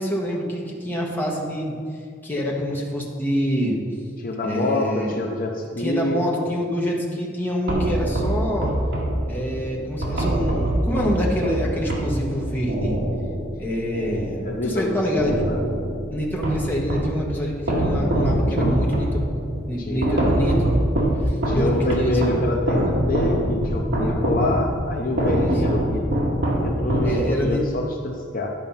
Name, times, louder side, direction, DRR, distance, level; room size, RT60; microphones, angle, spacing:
voice 1, 0.0-1.8 2.2-3.8 4.4-5.2 5.8-8.7 9.3-13.0 13.6-15.3 16.1-19.4 19.7-20.8 21.2-22.3 25.3-25.7 27.0-27.6, equal, 10° left, -3 dB, 1.3 m, -26 dB
voice 2, 4.2-6.2 10.1-10.3 14.4-15.6 18.6-18.7 19.8-20.3 21.5-28.5, left 2 dB, 45° left, 1 dB, 0.7 m, -26 dB
sound 1, 7.7-14.8 15.2-17.2 17.7-27.6, right 1 dB, 60° right, 1.9 m, -24 dB
10.5 x 5.5 x 5.6 m, 2.1 s
head